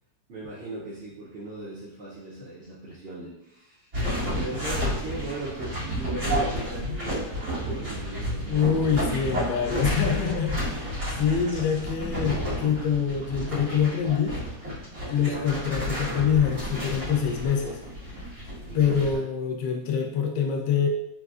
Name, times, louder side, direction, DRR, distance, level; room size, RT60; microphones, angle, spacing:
voice 1, 0.3-3.9 4.3-8.6 9.7-10.1 10.6-11.5 15.1-15.5 18.6-19.2, right 2 dB, 65° right, -5 dB, 0.6 m, -39 dB
sound 1, 3.9-19.2, equal, 45° right, 1.8 m, -31 dB
voice 2, 8.5-10.5 11.2-14.4 15.1-17.8 18.7-20.9, left 7 dB, 90° left, 3 dB, 1.2 m, -25 dB
3.8 x 2.4 x 2.4 m, 0.87 s
omnidirectional pair, 1.8 m